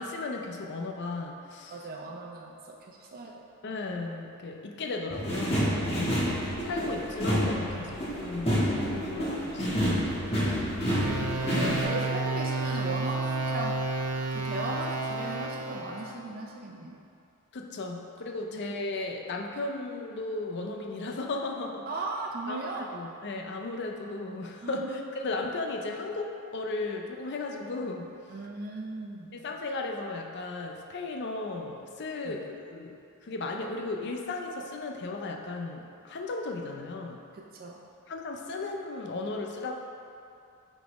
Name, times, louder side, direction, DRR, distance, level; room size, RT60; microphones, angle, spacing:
voice 1, 0.0-1.8 3.6-6.2 6.6-9.8 17.5-21.9 22.5-28.1 29.3-37.2 38.1-39.7, left 3 dB, 50° left, 2 dB, 0.6 m, -35 dB
voice 2, 1.7-3.3 10.5-10.6 11.4-13.7 14.3-17.0 21.9-22.9 24.6-25.0 28.3-29.3 32.2-32.4 37.3-37.8, right 2 dB, 40° right, -1 dB, 0.5 m, -37 dB
sound 1, 5.1-11.8, equal, 25° left, 1.4 m, -28 dB
sound 2, 10.9-16.1, right 3 dB, 85° right, 0.7 m, -31 dB
5.8 x 4.1 x 4.7 m, 2.6 s
head